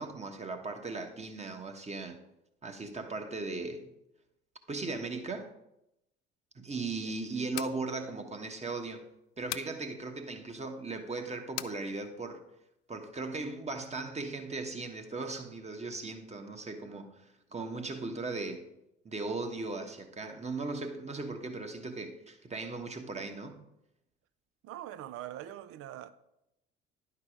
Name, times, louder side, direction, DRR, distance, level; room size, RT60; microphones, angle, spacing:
voice 1, 0.0-2.2 2.6-3.9 4.7-5.5 6.5-9.0 9.4-12.4 12.9-18.7 19.0-23.6, right 3 dB, 20° right, 1.2 m, -38 dB
voice 2, 7.0-7.5 24.6-26.1, right 12 dB, 45° right, 0.6 m, -43 dB
sound 1, 7.5-7.8 9.5-9.8 11.6-11.8, left 17 dB, 50° left, 0.4 m, -38 dB
10.5 x 4.9 x 4.9 m
figure-of-eight pair, 55°, 33 cm